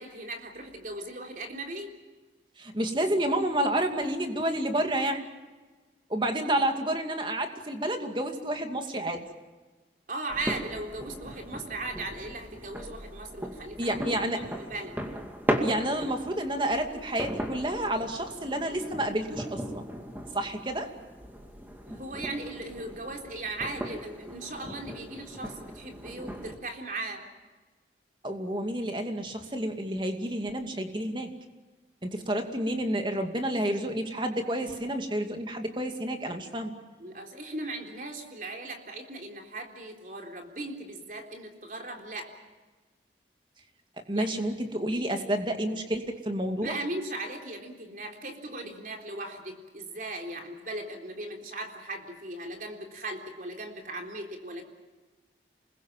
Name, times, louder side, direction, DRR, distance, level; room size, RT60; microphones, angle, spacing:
voice 1, 0.0-1.9 10.1-15.0 21.9-27.2 37.0-42.3 44.1-44.3 46.6-54.6, right 2 dB, 45° right, 3 dB, 3.8 m, -38 dB
voice 2, 2.6-5.3 6.1-9.3 13.8-14.5 15.6-19.9 20.3-20.9 28.2-31.3 32.0-36.7 44.1-46.8, right 1 dB, 25° right, 5 dB, 2.4 m, -30 dB
sound 1, 10.3-26.6, equal, 10° right, 2.2 m, -37 dB
28.0 x 21.5 x 7.4 m, 1.3 s
head